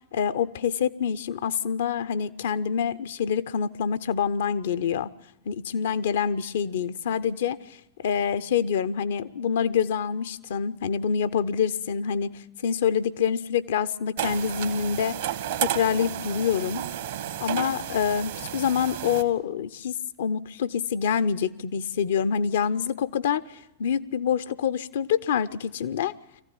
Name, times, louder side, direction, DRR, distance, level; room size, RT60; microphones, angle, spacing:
voice 1, 0.1-5.1 5.5-15.2 15.6-16.9 17.4-23.4 23.8-26.1, left 7 dB, 60° left, 0.7 m, -26 dB
sound 1, 14.2-19.2, right 11 dB, 60° right, 1.3 m, -32 dB
23.5 x 15.0 x 9.1 m
figure-of-eight pair, 90°, 0 cm